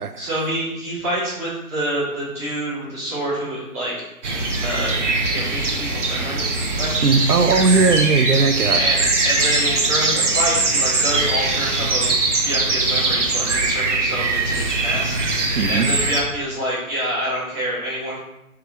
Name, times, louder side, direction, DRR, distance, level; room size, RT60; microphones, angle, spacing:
voice 1, 0.2-3.9 4.6-5.0 5.3-7.0 8.7-9.0 9.2-12.1 12.4-18.2, right 1 dB, 10° right, -10 dB, 0.9 m, -27 dB
sound 1, 4.2-16.2, right 3 dB, 55° right, 0.9 m, -21 dB
voice 2, 7.0-8.8 15.6-15.9, right 4 dB, 85° right, 9 dB, 0.5 m, -18 dB
3.4 x 3.4 x 4.2 m, 0.89 s
figure-of-eight pair, 145°, 44 cm